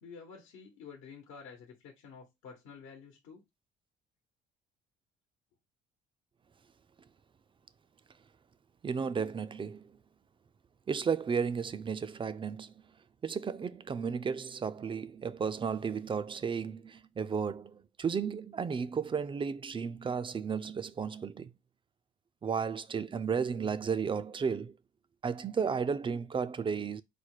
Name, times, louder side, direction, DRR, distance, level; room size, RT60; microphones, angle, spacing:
voice 1, 0.0-3.4, left 5 dB, 80° left, 1.1 m, -50 dB
voice 2, 8.8-9.9 10.9-12.7 13.2-21.5 22.4-24.7 25.2-27.0, right 6 dB, 25° right, 0.4 m, -33 dB
4.3 x 2.2 x 4.6 m
cardioid pair, 95°, 20 cm